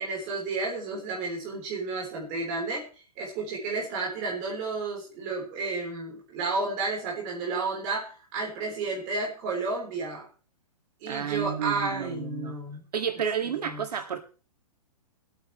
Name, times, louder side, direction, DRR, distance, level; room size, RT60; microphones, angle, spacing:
voice 1, 0.0-2.9 3.2-10.3 11.0-12.8 13.6-13.9, right 3 dB, 20° right, -2 dB, 3.8 m, -32 dB
voice 2, 11.1-12.6 12.9-14.2, right 8 dB, 90° right, 4 dB, 2.0 m, -31 dB
23.5 x 9.0 x 3.1 m, 0.38 s
hypercardioid pair, 180°, 20 cm